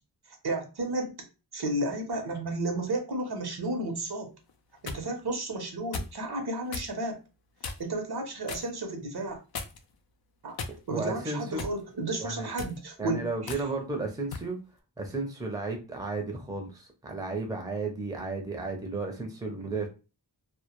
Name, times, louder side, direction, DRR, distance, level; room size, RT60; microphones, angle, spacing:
voice 1, 0.4-1.2 1.5-4.3 4.8-7.2 7.8-9.4 10.4-10.6 10.9-13.6, right 2 dB, 60° right, 4 dB, 0.7 m, -32 dB
sound 1, 4.5-5.0 5.9-6.2 6.7-6.9 7.6-8.0 8.5-8.7 9.5-9.9 10.6-11.1 11.6-11.8 12.5-12.8 13.5-13.6 14.3-14.5, left 4 dB, 60° left, 0.5 m, -37 dB
voice 2, 10.9-11.6 12.2-12.5 13.0-14.6 15.0-19.9, right 3 dB, 10° right, 3 dB, 0.5 m, -33 dB
2.1 x 2.1 x 2.9 m, 0.31 s
wide cardioid pair, 65°, 43 cm